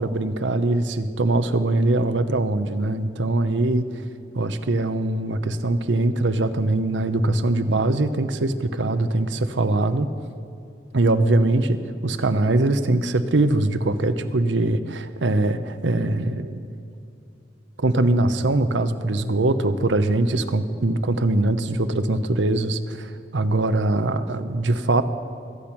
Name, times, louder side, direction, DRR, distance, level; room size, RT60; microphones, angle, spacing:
voice 1, 0.0-3.9 4.3-10.1 10.9-11.8 12.0-16.6 17.8-25.0, right 2 dB, 85° right, 10 dB, 0.8 m, -22 dB
22.0 x 8.7 x 6.0 m, 2.7 s
head